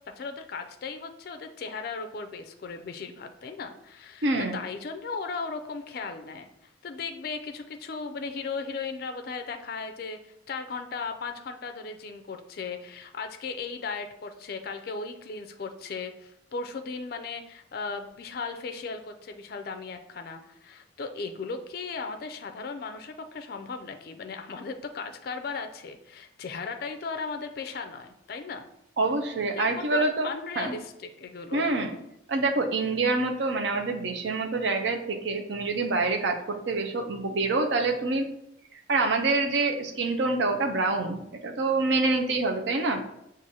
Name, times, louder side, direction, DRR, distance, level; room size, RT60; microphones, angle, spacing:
voice 1, 0.2-28.7 29.6-31.7, left 4 dB, 50° left, 6 dB, 0.3 m, -37 dB
voice 2, 4.2-4.6 29.0-30.8 31.5-31.9 32.3-38.3 38.9-43.0, right 3 dB, 65° right, 3 dB, 0.6 m, -26 dB
6.0 x 2.5 x 2.8 m, 0.79 s
head